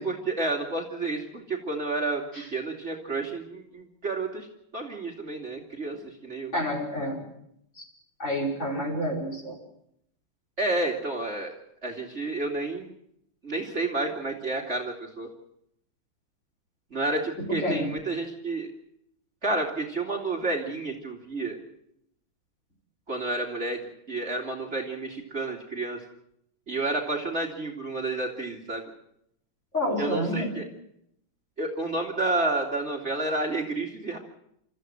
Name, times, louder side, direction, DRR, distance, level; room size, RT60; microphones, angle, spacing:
voice 1, 0.0-2.2 2.5-4.5 4.7-6.5 10.6-11.5 11.8-12.9 13.4-15.3 16.9-18.7 19.4-21.6 23.1-23.8 24.1-26.0 26.7-28.9 30.0-30.6 31.6-34.2, right 2 dB, 30° right, 0 dB, 2.8 m, -30 dB
voice 2, 6.5-7.3 7.8-7.9 8.2-9.6 17.5-17.9 29.7-30.5, equal, 35° left, 0 dB, 5.8 m, -29 dB
29.5 x 14.5 x 7.7 m, 0.76 s
omnidirectional pair, 2.3 m